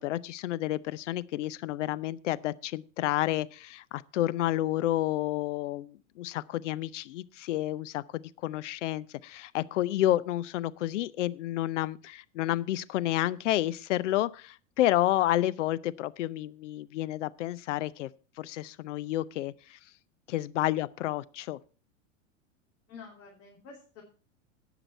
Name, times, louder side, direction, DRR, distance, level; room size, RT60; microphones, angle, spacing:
voice 1, 0.0-18.1 18.4-19.8 20.3-21.6, left 14 dB, 70° left, 18 dB, 0.7 m, -30 dB
voice 2, 22.9-24.0, left 5 dB, 40° left, -1 dB, 2.9 m, -49 dB
17.5 x 6.0 x 4.4 m, 0.37 s
hypercardioid pair, 100°, 38 cm